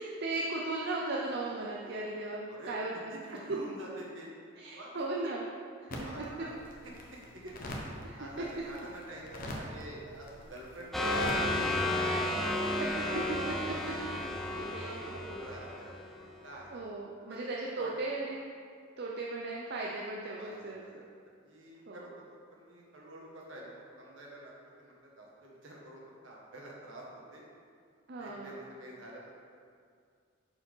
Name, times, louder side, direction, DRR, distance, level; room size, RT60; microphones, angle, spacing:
voice 1, 0.0-2.9 4.6-5.4 5.9-6.2 8.0-8.2 12.8-13.8 14.7-14.9 16.7-18.5 19.0-20.8 21.9-22.1 28.1-28.5, right 2 dB, 55° right, -2 dB, 0.6 m, -37 dB
voice 2, 2.5-4.3 4.7-5.3 5.8-6.6 6.8-7.6 7.9-12.3 13.8-14.1 14.5-15.9 16.4-16.7 17.3-17.4 17.7-18.2 20.4-21.1 21.4-27.4 28.2-29.3, right 1 dB, 70° right, -3 dB, 1.6 m, -47 dB
sound 1, 5.9-11.4, left 1 dB, 45° left, 1.1 m, -44 dB
sound 2, 10.9-16.3, left 1 dB, ahead, 0.7 m, -32 dB
6.6 x 4.8 x 5.4 m, 2.2 s
head